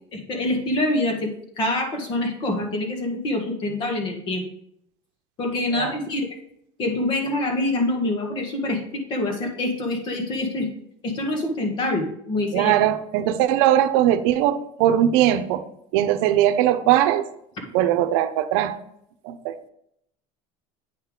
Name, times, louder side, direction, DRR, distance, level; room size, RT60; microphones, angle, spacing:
voice 1, 0.1-1.3 1.6-4.4 5.4-6.3 6.8-10.7 11.0-12.7, left 2 dB, 35° left, 3 dB, 1.8 m, -25 dB
voice 2, 12.5-15.6 15.9-17.2 17.7-18.8 19.2-19.6, right 11 dB, 75° right, 10 dB, 0.8 m, -20 dB
9.0 x 5.7 x 3.7 m, 0.72 s
cardioid pair, 165°, 14 cm